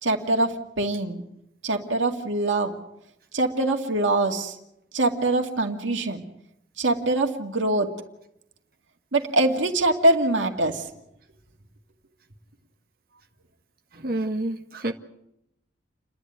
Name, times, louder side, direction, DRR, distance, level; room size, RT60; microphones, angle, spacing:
voice 1, 0.0-1.2 1.6-2.7 3.3-4.5 4.9-6.2 6.8-7.9 9.1-10.9, right 2 dB, 90° right, 3 dB, 2.4 m, -23 dB
voice 2, 13.9-14.9, right 1 dB, 50° right, 3 dB, 1.5 m, -28 dB
29.5 x 11.0 x 9.3 m, 0.83 s
head